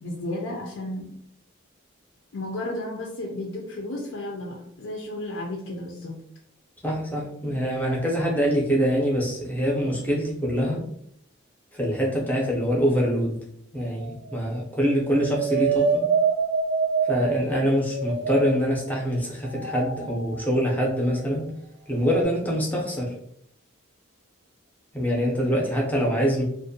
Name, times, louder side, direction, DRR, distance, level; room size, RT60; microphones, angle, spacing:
voice 1, 0.0-1.1 2.3-6.2, left 1 dB, 70° left, 0 dB, 0.5 m, -33 dB
voice 2, 6.8-10.8 11.7-13.4 13.7-16.0 17.1-21.5 21.9-23.1 24.9-26.4, equal, 10° left, -3 dB, 0.5 m, -24 dB
sound 1, 13.8-14.4 14.8-18.9 19.4-20.8 22.1-22.2, right 5 dB, 55° right, 0.4 m, -27 dB
2.5 x 2.1 x 2.6 m, 0.70 s
head